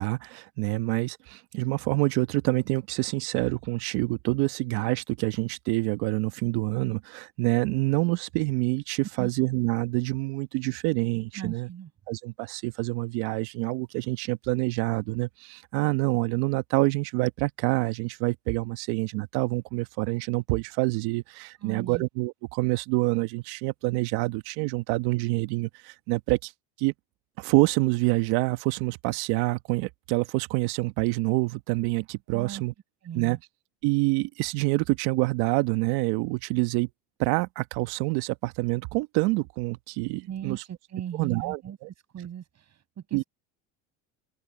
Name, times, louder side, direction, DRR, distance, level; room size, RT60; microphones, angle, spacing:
voice 1, 0.0-11.7 12.1-26.5 26.8-26.9 27.4-32.7 33.1-33.4 33.8-36.9 37.2-40.6 41.2-41.9 43.1-43.2, right 23 dB, 70° right, 1.4 m, -27 dB
voice 2, 11.3-11.9 21.6-22.0 32.3-32.6 33.0-33.4 40.3-41.8 42.1-43.2, right 9 dB, 40° right, 6.8 m, -38 dB
open air
supercardioid pair, 95°, 40 cm